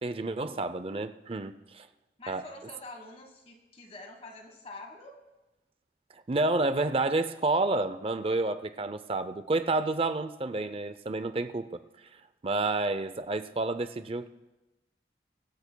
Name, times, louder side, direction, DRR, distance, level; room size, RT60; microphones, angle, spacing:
voice 1, 0.0-1.9 2.3-2.4 6.1-11.8 12.4-14.3, right 2 dB, 30° right, 11 dB, 0.5 m, -29 dB
voice 2, 2.2-5.1, left 2 dB, 35° left, 3 dB, 1.4 m, -46 dB
23.5 x 12.5 x 2.2 m, 1.1 s
head